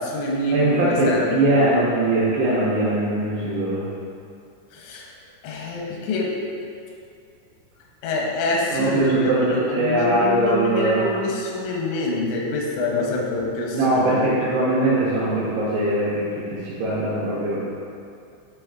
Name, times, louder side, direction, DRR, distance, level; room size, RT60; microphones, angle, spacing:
voice 1, 0.0-1.6 4.7-5.1 5.4-6.4 8.0-14.3, left 2 dB, 85° left, -2 dB, 3.3 m, -26 dB
voice 2, 0.5-3.9 8.7-11.0 13.7-17.6, right 1 dB, 85° right, -9 dB, 2.4 m, -21 dB
10.0 x 3.9 x 2.4 m, 2.4 s
omnidirectional pair, 5.7 m